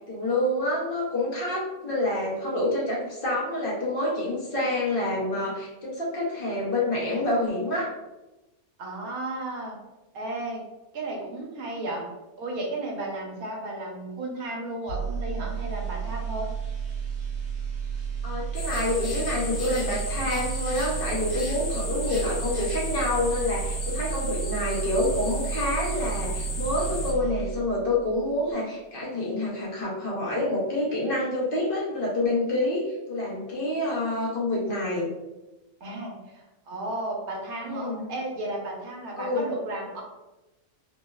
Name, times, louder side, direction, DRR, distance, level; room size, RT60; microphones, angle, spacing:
voice 1, 0.1-7.9 18.2-35.1 37.6-38.1 39.2-39.5, left 1 dB, 55° left, -5 dB, 0.7 m, -27 dB
voice 2, 8.8-9.8 10.1-10.6 10.9-12.1 12.4-16.5 35.8-40.0, right 2 dB, 85° right, 0 dB, 1.2 m, -34 dB
sound 1, 14.9-28.0 28.3-28.5, right 7 dB, 55° right, 1.2 m, -32 dB
sound 2, 18.5-27.1, left 2 dB, 85° left, 1.3 m, -35 dB
3.1 x 2.0 x 2.2 m, 1.0 s
omnidirectional pair, 1.5 m